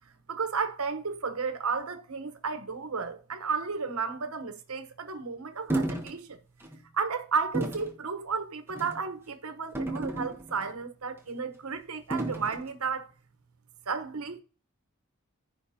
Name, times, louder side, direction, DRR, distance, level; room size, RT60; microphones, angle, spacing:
voice 1, 0.3-6.4 6.9-13.1 13.9-14.4, right 5 dB, 85° right, 1.0 m, -33 dB
sound 1, 5.7-6.1 6.6-6.8 7.5-7.9 8.7-9.0 9.8-10.7 12.1-12.6, right 2 dB, 10° right, 1.1 m, -32 dB
14.5 x 5.0 x 2.8 m
head